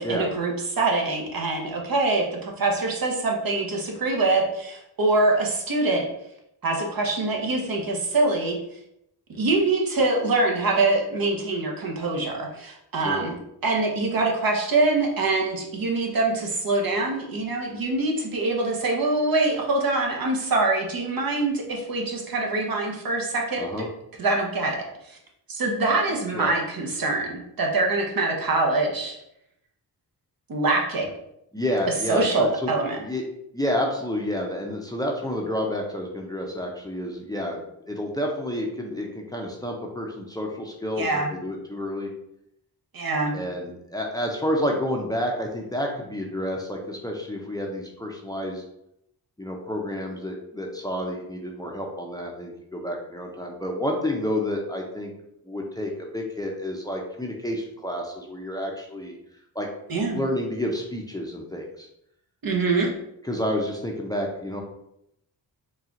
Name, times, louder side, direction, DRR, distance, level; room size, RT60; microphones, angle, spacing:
voice 1, 0.0-6.1 6.6-8.6 9.3-13.4 13.6-23.9 24.2-25.2 25.5-29.2 30.5-31.1 32.1-33.0 41.0-41.3 42.9-43.3 59.9-60.2 62.4-62.9, right 2 dB, 60° right, 1 dB, 1.0 m, -24 dB
voice 2, 26.1-26.5 31.5-32.7 33.0-33.2 33.5-37.6 37.9-42.1 43.3-48.6 49.4-55.1 55.4-59.1 59.5-59.7 60.1-61.9 63.2-64.6, left 1 dB, 10° left, 0 dB, 0.6 m, -29 dB
4.3 x 2.3 x 3.7 m, 0.78 s
wide cardioid pair, 105°, 39 cm